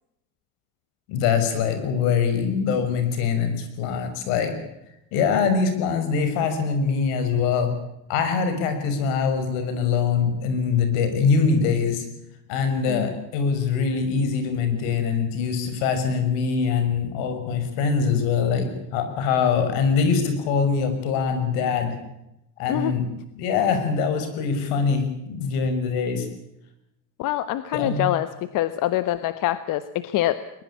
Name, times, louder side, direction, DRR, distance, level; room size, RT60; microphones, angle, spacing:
voice 1, 1.1-4.5 5.1-7.7 8.1-12.1 12.5-22.0 22.6-23.1 23.4-26.3 27.7-28.1, left 5 dB, 90° left, 8 dB, 6.1 m, -23 dB
voice 2, 27.2-30.4, left 14 dB, 60° left, 12 dB, 1.2 m, -25 dB
22.0 x 21.5 x 8.5 m, 0.84 s
cardioid pair, 140°, 36 cm